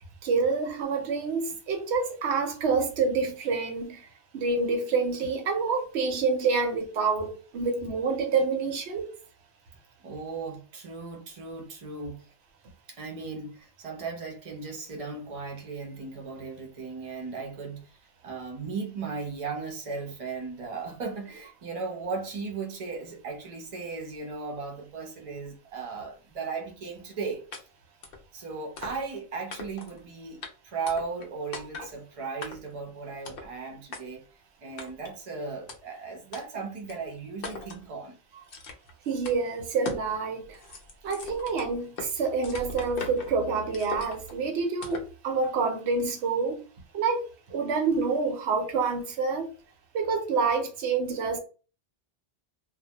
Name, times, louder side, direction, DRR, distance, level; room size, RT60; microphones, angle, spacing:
voice 1, 0.2-4.0 4.3-9.1 39.1-40.6 41.0-46.6 46.9-47.2 47.5-49.5 49.9-51.4, right 4 dB, 90° right, 0.9 m, -27 dB
voice 2, 10.0-12.3 12.9-27.7 28.3-34.3 34.6-38.2, right 4 dB, 40° right, 0.5 m, -36 dB
sound 1, 27.5-27.6 28.0-28.2 28.8-29.2 29.5-30.0 30.4-30.5 30.9-31.3 31.5-31.9 32.4-32.8 33.2-33.5 33.9-34.0 34.8-35.1 35.7-35.8 36.3-36.4 36.9-37.0 37.4-37.8 38.5-38.9 39.2-39.4 39.8-40.1 40.4-42.1 42.4-43.3 43.7-44.3 44.8-45.1, left 3 dB, 65° left, 0.7 m, -40 dB
2.1 x 2.1 x 2.7 m
omnidirectional pair, 1.1 m